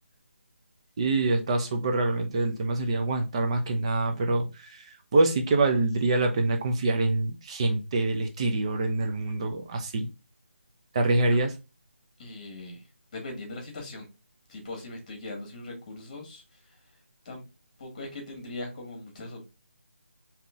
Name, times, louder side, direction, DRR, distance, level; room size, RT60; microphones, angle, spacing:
voice 1, 1.0-10.1 10.9-11.5, right 2 dB, 25° right, 0.6 m, -25 dB
voice 2, 12.2-12.8 13.1-14.1 14.5-16.4 17.2-17.4 17.8-19.4, left 2 dB, 30° left, 1.4 m, -40 dB
3.6 x 2.9 x 3.5 m
figure-of-eight pair, 165°, 7 cm